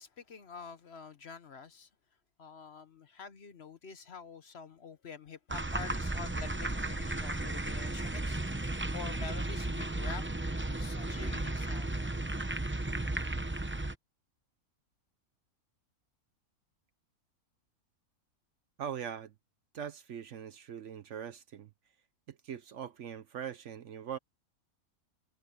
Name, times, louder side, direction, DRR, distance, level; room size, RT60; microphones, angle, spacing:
voice 1, 0.0-1.9 2.4-11.9, left 5 dB, 50° left, 1.1 m, -47 dB
sound 1, 5.5-13.9, right 2 dB, 15° right, 0.5 m, -34 dB
voice 2, 18.8-19.3 19.7-21.7 22.3-24.2, right 8 dB, 60° right, 0.9 m, -41 dB
omnidirectional pair, 1.6 m